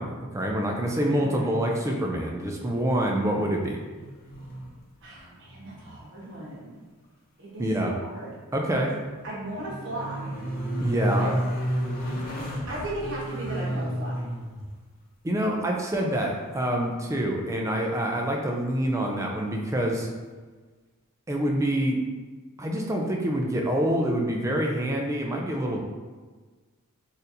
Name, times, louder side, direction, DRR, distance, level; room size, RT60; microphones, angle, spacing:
voice 1, 0.0-3.8 7.6-7.9 8.5-8.9 10.8-11.3 15.2-20.1 21.3-22.0 22.6-25.8, right 1 dB, 15° right, 0 dB, 0.3 m, -26 dB
voice 2, 1.1-1.6 5.0-6.8 7.4-8.4 8.7-9.0 9.2-10.4 11.2-11.3 12.7-14.2, right 1 dB, 55° right, -6 dB, 1.1 m, -36 dB
sound 1, 3.9-4.9 5.2-6.0 6.2-6.3 8.8-14.7 17.6-17.7, equal, 40° left, 0.6 m, -32 dB
4.1 x 2.5 x 2.6 m, 1.4 s
head